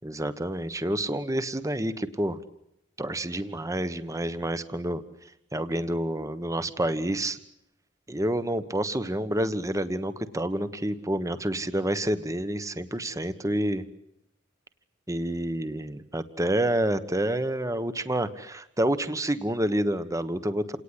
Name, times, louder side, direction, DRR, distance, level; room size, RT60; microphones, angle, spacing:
voice 1, 0.0-2.4 3.0-5.0 5.5-7.4 8.1-13.8 15.1-20.8, right 1 dB, 15° right, 12 dB, 1.3 m, -28 dB
29.0 x 18.5 x 9.9 m, 0.81 s
head